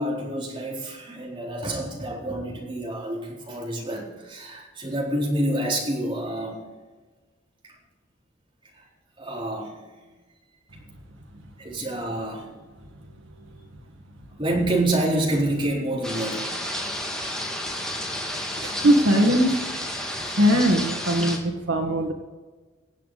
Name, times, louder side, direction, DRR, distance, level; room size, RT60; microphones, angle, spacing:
voice 1, 0.0-6.6 8.8-8.9 9.2-10.0 11.6-12.5 13.3-13.4 14.4-16.4, right 1 dB, 25° right, -3 dB, 4.2 m, -28 dB
sound 1, 16.0-21.4, left 1 dB, 5° left, 2.4 m, -31 dB
voice 2, 18.6-19.6 20.2-22.1, equal, 80° right, 2 dB, 1.9 m, -20 dB
25.5 x 8.5 x 4.2 m, 1.3 s
head